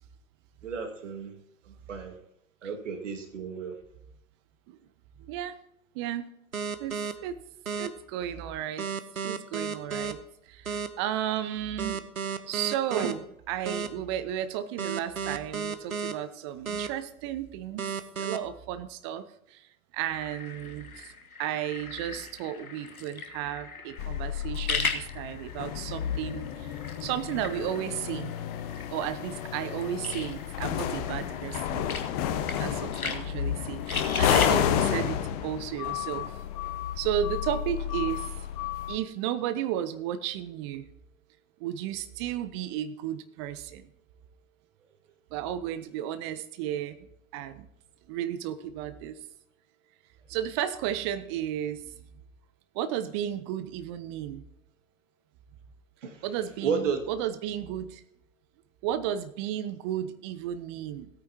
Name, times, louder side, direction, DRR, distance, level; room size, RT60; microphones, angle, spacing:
voice 1, 0.6-1.3 1.7-2.2 2.6-3.8 13.0-13.1 56.0-56.3 56.6-57.0, right 6 dB, 60° right, 4 dB, 2.1 m, -32 dB
voice 2, 5.2-5.6 5.9-6.3 6.8-7.4 7.8-8.9 9.2-10.2 10.5-12.0 12.5-13.2 13.5-17.9 18.2-19.2 19.5-19.6 19.9-21.1 21.4-26.7 27.0-28.3 28.9-31.9 32.6-36.3 37.0-38.3 38.9-40.9 41.6-43.9 45.3-47.0 47.3-47.7 48.1-49.1 50.3-51.8 52.7-54.4 56.2-58.0 58.8-61.1, right 11 dB, 20° right, 12 dB, 0.6 m, -33 dB
sound 1, 6.5-7.1 7.7-7.9 8.8-10.1 10.7-10.9 11.8-13.1 13.7-13.9 14.8-16.1 16.7-16.9 17.8-18.4, right 6 dB, 75° right, 1.1 m, -32 dB
sound 2, 20.1-34.5, left 4 dB, 80° left, 1.4 m, -38 dB
sound 3, 24.0-39.0, left 10 dB, 25° left, 0.8 m, -31 dB
16.5 x 9.1 x 2.8 m, 0.80 s
figure-of-eight pair, 110°, 43 cm